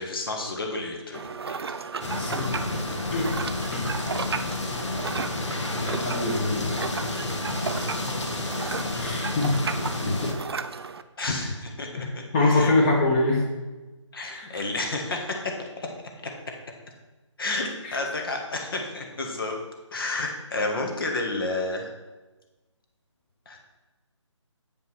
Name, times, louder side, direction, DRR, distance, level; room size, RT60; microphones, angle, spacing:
voice 1, 0.0-1.6 3.6-3.8 11.2-12.1 12.4-12.7 14.1-15.9 16.2-16.3 17.4-19.6 19.9-21.9 23.4-23.6, left 2 dB, 45° left, 2 dB, 1.6 m, -31 dB
sound 1, 1.1-11.0, right 5 dB, 55° right, 0.5 m, -34 dB
sound 2, 2.0-10.3, left 2 dB, 65° left, 1.5 m, -31 dB
voice 2, 2.1-2.6 3.1-3.3 3.7-3.9 5.7-6.9 9.0-9.6 10.0-10.3 12.0-12.1 12.3-13.4 14.3-14.5 17.8-18.0, left 2 dB, 15° left, -1 dB, 1.2 m, -24 dB
8.2 x 5.3 x 6.2 m, 1.2 s
figure-of-eight pair, 165°, 16 cm